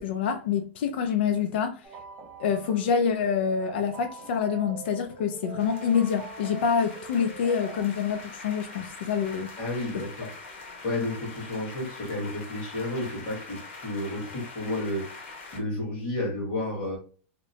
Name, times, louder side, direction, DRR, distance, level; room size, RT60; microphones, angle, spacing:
voice 1, 0.0-1.8 2.4-9.5, left 7 dB, 60° left, 0.4 m, -26 dB
sound 1, 1.8-7.8, right 5 dB, 20° right, 0.5 m, -43 dB
sound 2, 5.6-15.6, left 3 dB, 85° left, 1.0 m, -44 dB
voice 2, 9.6-10.3 10.8-15.1 15.5-17.0, left 1 dB, 30° left, 1.5 m, -31 dB
2.8 x 2.1 x 2.6 m
supercardioid pair, 175°, 6 cm